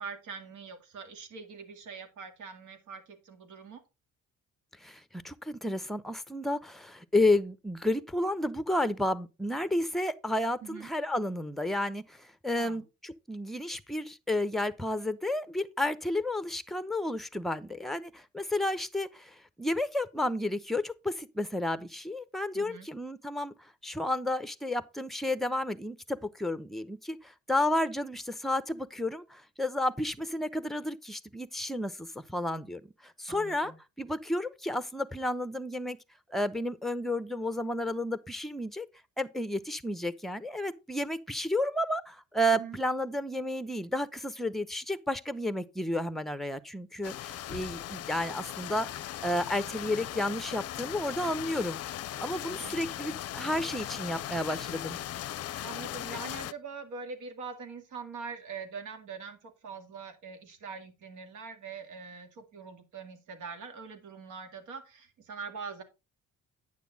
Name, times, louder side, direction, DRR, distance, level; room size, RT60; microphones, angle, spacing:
voice 1, 0.0-3.8 10.6-10.9 12.6-12.8 22.5-22.9 33.3-33.8 42.5-42.8 52.5-52.9 55.6-65.8, right 5 dB, 80° right, 2.2 m, -43 dB
voice 2, 4.8-33.7 34.0-36.0 36.3-38.9 39.2-51.8 52.2-55.0, left 1 dB, ahead, 0.8 m, -32 dB
sound 1, 47.0-56.5, left 12 dB, 55° left, 0.5 m, -38 dB
9.4 x 6.8 x 4.0 m
cardioid pair, 90°, 30 cm